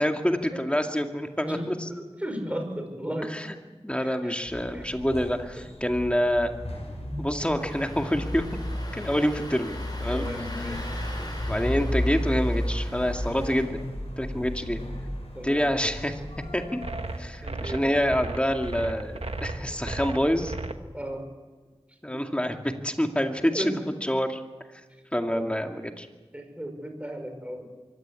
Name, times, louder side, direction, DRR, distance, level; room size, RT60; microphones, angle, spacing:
voice 1, 0.0-1.7 3.3-3.5 3.8-6.5 7.2-8.5 8.9-10.3 11.2-13.9 14.2-14.8 15.4-16.2 16.5-16.8 17.2-20.5 22.0-22.5 22.8-23.6 24.1-24.4 25.1-26.1, equal, 10° left, 4 dB, 2.2 m, -27 dB
voice 2, 1.4-3.3 4.0-4.4 4.7-4.9 5.6-5.7 9.4-9.5 10.1-10.9 14.3-14.4 15.3-15.7 17.4-17.9 19.8-20.1 20.9-21.3 22.1-22.2 23.5-23.9 25.3-25.4 26.3-27.7, equal, 10° right, 5 dB, 5.4 m, -35 dB
sound 1, 4.5-20.5, left 1 dB, 70° left, 6.5 m, -35 dB
Engine starting, 7.6-13.7, left 1 dB, 40° left, 6.5 m, -41 dB
sound 2, 16.8-20.7, right 3 dB, 65° right, 1.3 m, -35 dB
24.0 x 17.0 x 8.5 m, 1.3 s
wide cardioid pair, 55°, 11 cm